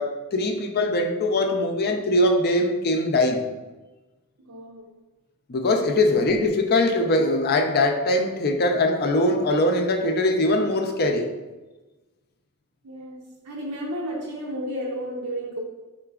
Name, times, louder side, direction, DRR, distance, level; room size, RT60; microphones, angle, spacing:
voice 1, 0.0-3.4 5.5-11.3, left 1 dB, 45° left, 4 dB, 0.5 m, -22 dB
voice 2, 4.4-4.9 12.8-15.6, equal, 75° right, -4 dB, 0.6 m, -32 dB
4.8 x 3.7 x 2.4 m, 1.2 s
head